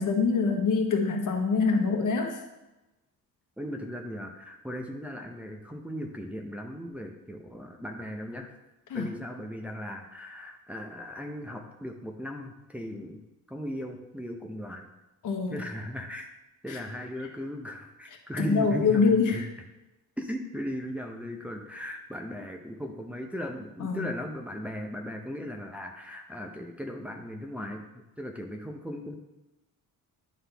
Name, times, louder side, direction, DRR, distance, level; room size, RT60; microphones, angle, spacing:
voice 1, 0.0-2.4 8.9-9.1 15.2-15.6 16.7-16.8 18.4-19.4 23.8-24.1, left 4 dB, 60° left, 3 dB, 1.2 m, -25 dB
voice 2, 3.6-8.5 8.9-13.2 13.5-14.9 15.5-16.3 16.6-19.4 20.2-27.8 28.2-29.2, equal, 5° right, 1 dB, 0.7 m, -37 dB
11.0 x 3.9 x 3.4 m, 1.0 s
cardioid pair, 115°, 35 cm